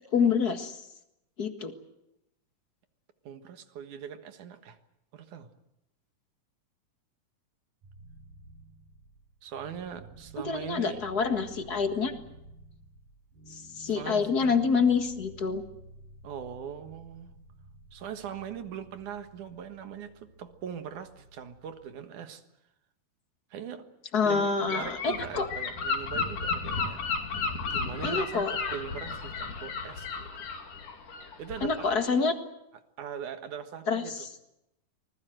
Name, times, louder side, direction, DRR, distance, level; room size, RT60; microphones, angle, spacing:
voice 1, 0.1-0.8 1.4-1.7 10.4-12.1 13.5-15.6 24.1-25.5 28.0-28.5 31.6-32.3 33.9-34.3, left 5 dB, 40° left, 7 dB, 1.6 m, -27 dB
voice 2, 3.2-4.8 5.1-5.5 9.4-11.0 13.9-14.5 16.2-17.3 17.9-22.4 23.5-23.8 24.2-27.0 27.4-30.3 31.4-31.9 33.0-34.1, right 8 dB, 65° right, 8 dB, 2.8 m, -41 dB
sound 1, 7.8-21.8, right 1 dB, 85° right, 7.1 m, -52 dB
Gull seagull / Wind, 24.7-32.0, left 4 dB, 70° left, 4.3 m, -33 dB
26.0 x 20.5 x 7.8 m, 0.86 s
omnidirectional pair, 3.9 m